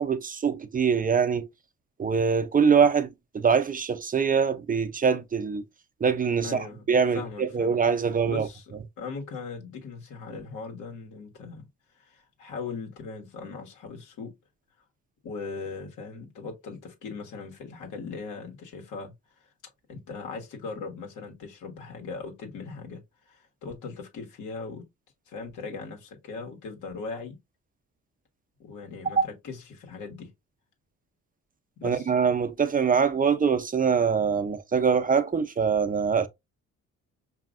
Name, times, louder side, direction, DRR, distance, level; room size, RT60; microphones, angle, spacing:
voice 1, 0.0-1.5 2.0-3.1 3.3-5.6 6.0-6.6 6.9-8.5 29.2-29.3 31.8-36.3, right 6 dB, 30° right, 0.5 m, -23 dB
voice 2, 6.4-6.9 7.1-7.8 8.2-11.7 11.9-14.3 15.2-19.1 19.4-19.5 19.9-24.9 25.3-27.4 28.6-30.3 31.8-32.1, left 4 dB, 80° left, 1.5 m, -39 dB
5.1 x 2.8 x 2.5 m
cardioid pair, 90°, 30 cm